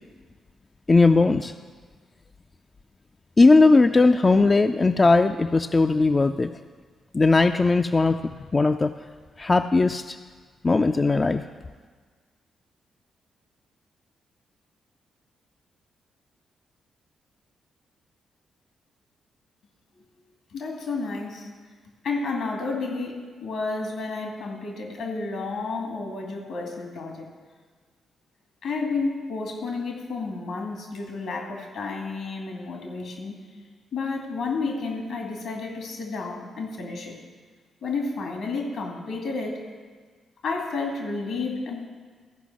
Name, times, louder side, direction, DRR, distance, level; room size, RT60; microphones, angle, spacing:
voice 1, 0.9-1.5 3.4-6.5 7.1-8.2 8.5-8.9 9.4-10.2 10.6-11.4, left 3 dB, 35° left, 8 dB, 0.4 m, -18 dB
voice 2, 20.5-21.5 22.0-27.3 28.6-33.3 33.9-37.2 37.8-39.6 40.4-41.9, left 3 dB, 80° left, 1 dB, 2.1 m, -31 dB
14.0 x 5.1 x 6.2 m, 1.5 s
supercardioid pair, 55°, 0 cm